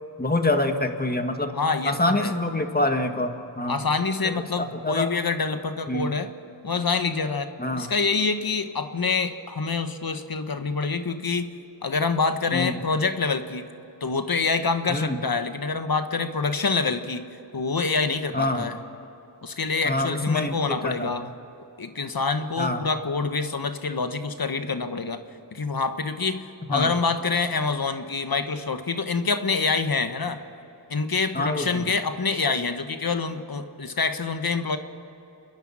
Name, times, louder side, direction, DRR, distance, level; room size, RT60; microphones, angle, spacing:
voice 1, 0.2-1.6 1.9-3.8 4.2-5.1 5.9-6.1 7.6-7.9 12.5-12.7 14.9-15.2 18.3-18.7 19.8-21.3 22.6-22.9 26.7-26.9 31.3-31.7, left 2 dB, 20° left, 6 dB, 1.9 m, -26 dB
voice 2, 1.5-2.3 3.7-6.3 6.6-13.7 14.0-17.3 17.5-18.7 19.4-21.3 21.8-25.2 25.5-30.4 30.9-34.8, left 4 dB, 55° left, 9 dB, 1.4 m, -26 dB
29.0 x 10.5 x 8.7 m, 2.9 s
cardioid pair, 55°, 43 cm